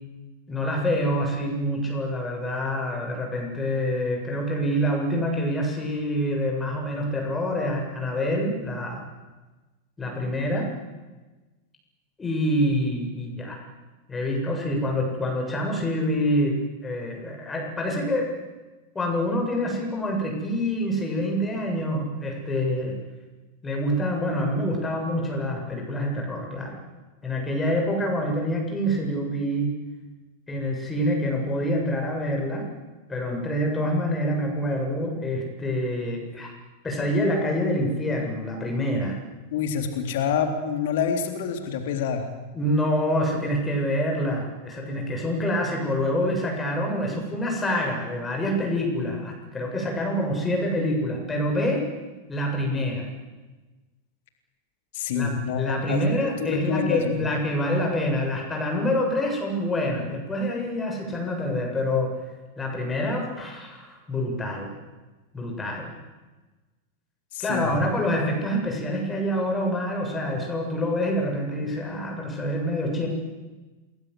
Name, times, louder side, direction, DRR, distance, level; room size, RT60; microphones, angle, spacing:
voice 1, 0.5-9.0 10.0-10.7 12.2-13.6 14.1-16.6 16.8-18.3 18.9-22.9 23.6-26.8 27.2-29.7 30.5-32.7 33.1-36.5 36.8-39.2 42.5-51.8 52.3-53.1 55.1-62.1 62.6-64.7 65.3-65.9 67.4-73.1, equal, 15° left, 1 dB, 7.4 m, -26 dB
voice 2, 39.5-42.3 54.9-57.3 67.3-67.8, left 7 dB, 55° left, 6 dB, 3.6 m, -27 dB
28.5 x 21.0 x 8.1 m, 1.2 s
figure-of-eight pair, 90°, 0 cm